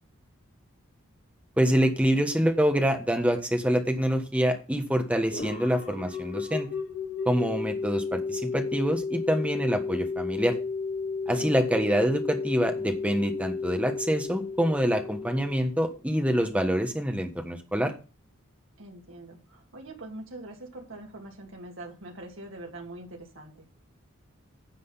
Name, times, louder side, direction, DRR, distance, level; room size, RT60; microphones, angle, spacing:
voice 1, 1.6-6.7 7.2-10.5 11.3-17.9, equal, 5° right, 5 dB, 1.3 m, -26 dB
sound 1, 5.3-16.0, left 4 dB, 55° left, 2.7 m, -33 dB
voice 2, 11.3-11.7 18.8-23.7, right 2 dB, 65° right, 0 dB, 2.5 m, -43 dB
10.5 x 6.1 x 5.7 m, 0.33 s
head